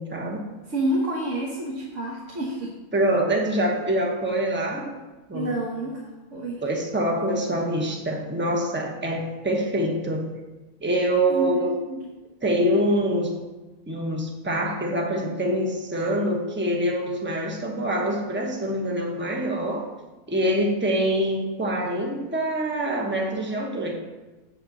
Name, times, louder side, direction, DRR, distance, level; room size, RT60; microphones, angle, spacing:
voice 1, 0.0-0.5 2.9-4.9 5.3-5.5 6.6-10.3 10.8-11.7 12.4-13.4 13.9-19.8 20.3-23.9, right 1 dB, 10° right, 0 dB, 0.9 m, -25 dB
voice 2, 0.6-2.7 5.3-6.0 6.3-6.6 11.3-12.0, right 1 dB, 55° right, -3 dB, 1.5 m, -28 dB
7.9 x 4.4 x 6.6 m, 1.1 s
omnidirectional pair, 1.6 m